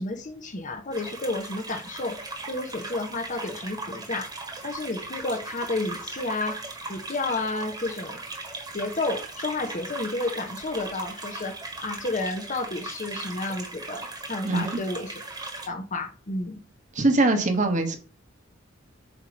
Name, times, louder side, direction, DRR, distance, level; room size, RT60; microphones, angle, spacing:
voice 1, 0.0-2.2 2.5-6.6 6.9-8.2 8.7-11.6 11.8-15.2 15.7-16.6, left 2 dB, 40° left, 0.9 m, -31 dB
sound 1, 0.9-15.7, right 2 dB, 20° right, 1.4 m, -38 dB
voice 2, 14.4-14.8 16.9-18.0, right 2 dB, 35° right, 1.2 m, -22 dB
8.0 x 3.0 x 5.2 m
head